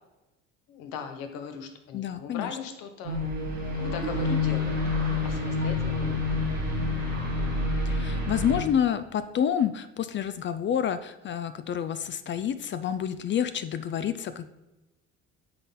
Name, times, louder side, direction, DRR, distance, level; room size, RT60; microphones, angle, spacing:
voice 1, 0.7-3.2 3.7-4.8 5.2-6.2, left 6 dB, 60° left, 7 dB, 1.0 m, -38 dB
voice 2, 1.9-2.5 7.9-14.5, left 9 dB, 30° left, 11 dB, 0.4 m, -28 dB
sound 1, 3.0-8.6, left 2 dB, 90° right, 1.2 m, -28 dB
9.5 x 4.0 x 3.8 m, 1.0 s
figure-of-eight pair, 55°, 39 cm